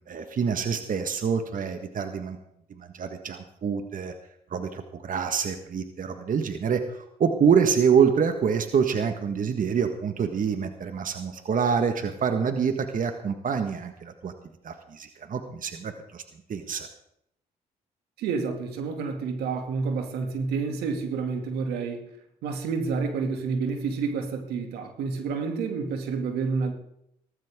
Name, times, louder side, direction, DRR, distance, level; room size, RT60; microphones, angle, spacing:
voice 1, 0.0-2.4 2.8-4.1 4.5-14.3 14.6-16.2 16.5-16.9, right 6 dB, 55° right, 7 dB, 1.6 m, -26 dB
voice 2, 18.2-22.1 22.4-26.7, right 5 dB, 90° right, 4 dB, 2.5 m, -29 dB
18.0 x 14.5 x 3.8 m, 0.75 s
supercardioid pair, 65°, 16 cm